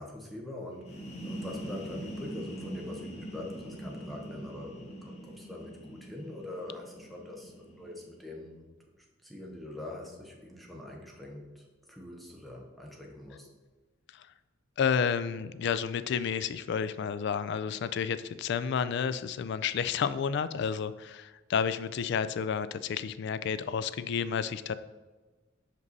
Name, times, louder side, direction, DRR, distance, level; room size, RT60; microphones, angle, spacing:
voice 1, 0.0-13.5, left 1 dB, ahead, -1 dB, 0.9 m, -44 dB
sound 1, 0.7-8.3, right 1 dB, 35° left, 1.2 m, -43 dB
voice 2, 14.8-24.7, left 7 dB, 60° left, 14 dB, 0.3 m, -31 dB
5.3 x 5.2 x 4.0 m, 1.2 s
head